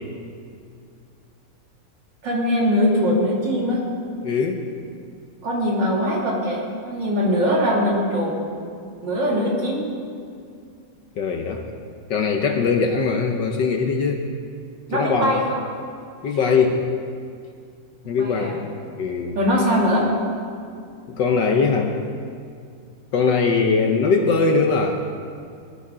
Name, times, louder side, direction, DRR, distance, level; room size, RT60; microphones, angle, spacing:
voice 1, 2.2-3.8 5.4-8.3 9.0-9.8 14.9-15.6 18.2-18.5 19.3-20.1, equal, 55° right, -4 dB, 3.2 m, -21 dB
voice 2, 4.2-4.6 11.2-11.7 12.1-14.2 14.9-15.4 16.2-16.8 18.0-18.6 18.9-19.4 21.1-22.0 23.1-25.0, left 4 dB, 65° left, 4 dB, 1.4 m, -21 dB
20.0 x 12.5 x 3.8 m, 2.3 s
omnidirectional pair, 2.4 m